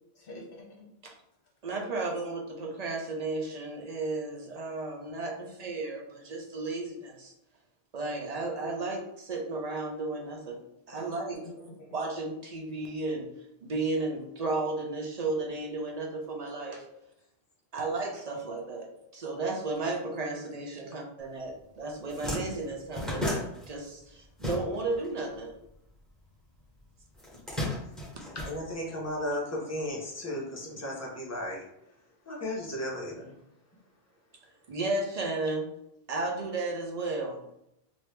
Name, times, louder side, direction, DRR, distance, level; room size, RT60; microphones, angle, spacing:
voice 1, 0.1-0.8 10.9-11.1 11.4-11.9 16.9-17.3 18.8-19.1 20.2-20.3 20.6-21.0, left 1 dB, 60° left, 0 dB, 0.8 m, -49 dB
voice 2, 1.6-7.3 7.9-10.6 10.9-11.4 11.9-13.3 13.6-16.8 17.7-25.5 34.7-35.7 36.1-37.4, right 3 dB, 45° right, 1 dB, 0.6 m, -34 dB
sound 1, 21.5-21.6 21.9-25.1 25.3-26.5 27.1-29.2, left 1 dB, ahead, 1.1 m, -35 dB
voice 3, 28.3-31.6 32.2-33.3, left 1 dB, 15° left, -3 dB, 0.7 m, -35 dB
2.9 x 2.6 x 3.3 m, 0.80 s
omnidirectional pair, 1.1 m